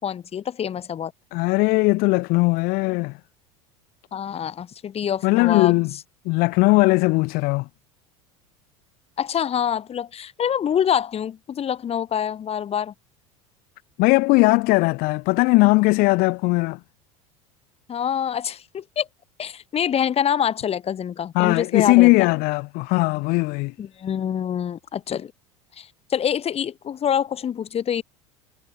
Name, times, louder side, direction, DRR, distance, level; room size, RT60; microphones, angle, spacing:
voice 1, 0.0-1.1 4.1-5.8 9.2-12.9 17.9-19.1 19.4-22.3 23.8-25.3 25.8-28.0, left 9 dB, 35° left, 5.1 m, -26 dB
voice 2, 1.3-3.1 5.2-5.9 6.3-7.7 14.0-16.8 21.4-23.7, left 24 dB, 60° left, 3.7 m, -19 dB
hypercardioid pair, 85°, 17 cm